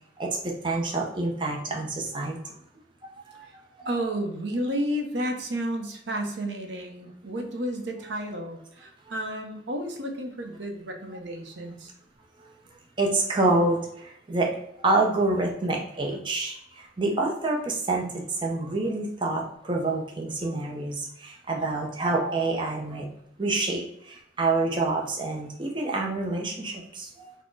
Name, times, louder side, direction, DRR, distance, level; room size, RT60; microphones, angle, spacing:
voice 1, 0.2-2.4 3.3-4.0 12.4-12.5 13.0-23.1 23.4-27.3, right 2 dB, 25° right, -1 dB, 0.5 m, -27 dB
voice 2, 3.8-11.9, equal, 70° right, 4 dB, 0.7 m, -32 dB
4.3 x 2.1 x 4.5 m, 0.75 s
head